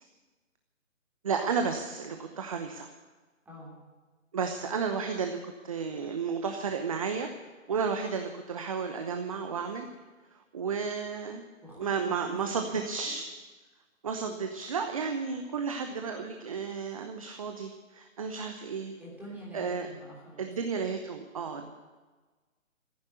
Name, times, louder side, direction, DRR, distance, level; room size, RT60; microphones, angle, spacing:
voice 1, 1.2-2.9 4.3-7.3 7.7-9.9 10.3-11.5 11.8-13.3 14.0-18.9 19.5-19.9 20.4-21.7, right 5 dB, 25° right, 5 dB, 0.8 m, -32 dB
voice 2, 3.4-3.8 11.6-13.1 19.0-20.5 21.6-21.7, left 1 dB, 5° right, -4 dB, 3.1 m, -46 dB
15.0 x 9.8 x 9.5 m, 1.3 s
figure-of-eight pair, 150°, 40 cm